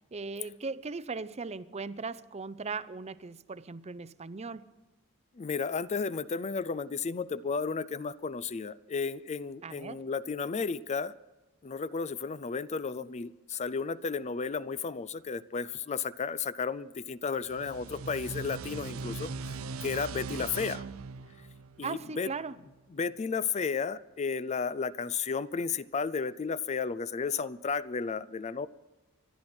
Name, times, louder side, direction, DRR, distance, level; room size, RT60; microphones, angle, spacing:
voice 1, 0.1-4.7 9.6-10.0 20.4-20.5 21.8-22.5, right 4 dB, 30° right, 0.6 m, -38 dB
voice 2, 5.4-11.1 11.6-19.5 19.8-20.8 21.8-22.3 22.9-28.7, left 5 dB, 35° left, 0.4 m, -33 dB
sound 1, 17.3-22.7, right 4 dB, 90° right, 0.7 m, -40 dB
26.0 x 11.5 x 4.4 m
head